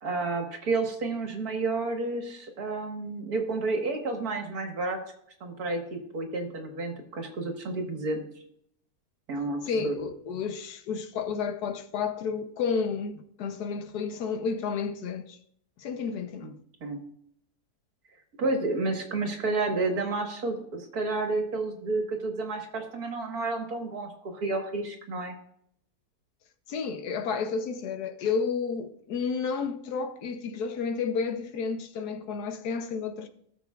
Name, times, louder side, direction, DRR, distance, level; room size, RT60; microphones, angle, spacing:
voice 1, 0.0-5.0 5.4-8.2 9.3-10.0 16.4-16.5 16.8-17.0 18.4-25.4, right 3 dB, 70° right, 2.1 m, -30 dB
voice 2, 9.7-15.4 15.8-16.5 26.7-33.3, left 5 dB, 85° left, 1.4 m, -31 dB
17.0 x 6.9 x 2.4 m
omnidirectional pair, 1.6 m